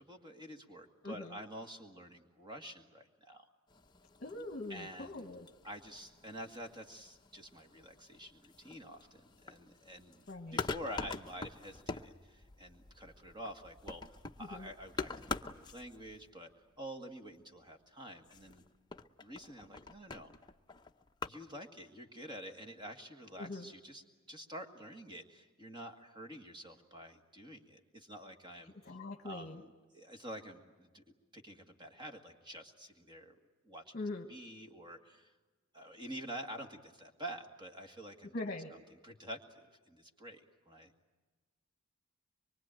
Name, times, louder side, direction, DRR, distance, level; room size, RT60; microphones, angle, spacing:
voice 1, 0.0-3.5 4.7-5.3 5.6-16.5 16.8-18.6 19.2-20.3 21.3-28.9 29.2-31.0 31.3-33.4 33.6-33.9 34.3-35.3 35.7-38.3 39.0-40.9, equal, 20° right, 4 dB, 1.9 m, -48 dB
voice 2, 1.0-1.4 4.2-5.5 10.3-10.7 14.5-14.7 23.4-23.7 28.8-29.6 33.9-34.3 38.3-38.7, left 2 dB, 40° left, 3 dB, 1.4 m, -42 dB
sound 1, 3.7-16.5 18.2-21.3, left 4 dB, 20° left, 0.7 m, -45 dB
25.0 x 23.0 x 9.0 m, 1.3 s
head